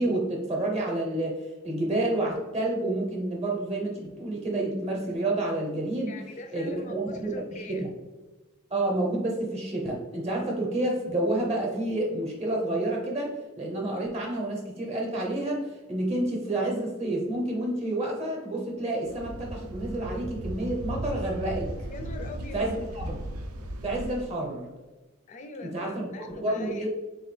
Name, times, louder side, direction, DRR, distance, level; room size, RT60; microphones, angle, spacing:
voice 1, 0.0-1.4 1.6-6.2 6.5-7.9 8.7-21.7 22.5-23.2 23.8-24.7 25.6-26.9, right 1 dB, 30° right, -1 dB, 0.7 m, -29 dB
voice 2, 6.1-7.9 21.9-22.8 25.3-26.9, left 2 dB, 35° left, 5 dB, 0.4 m, -41 dB
sound 1, 19.1-24.2, right 1 dB, 85° right, 0.5 m, -36 dB
4.0 x 2.9 x 3.2 m, 1.2 s
head